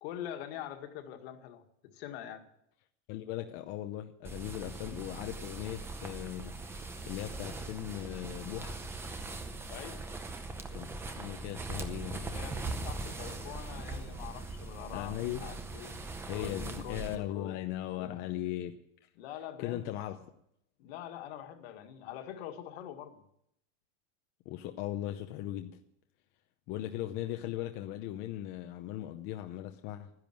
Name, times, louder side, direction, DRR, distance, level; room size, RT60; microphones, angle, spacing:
voice 1, 0.0-2.5 9.7-10.0 12.2-16.0 16.3-17.6 17.9-18.2 19.2-19.9 20.8-23.2, left 10 dB, 55° left, 1.9 m, -44 dB
voice 2, 3.1-8.8 10.7-10.9 11.2-12.3 14.9-15.5 16.3-18.8 19.6-20.2 24.5-25.8 26.7-30.1, left 13 dB, 30° left, 0.7 m, -38 dB
sound 1, 4.2-17.2, right 3 dB, 5° right, 0.7 m, -41 dB
13.0 x 10.5 x 9.1 m
supercardioid pair, 175°, 37 cm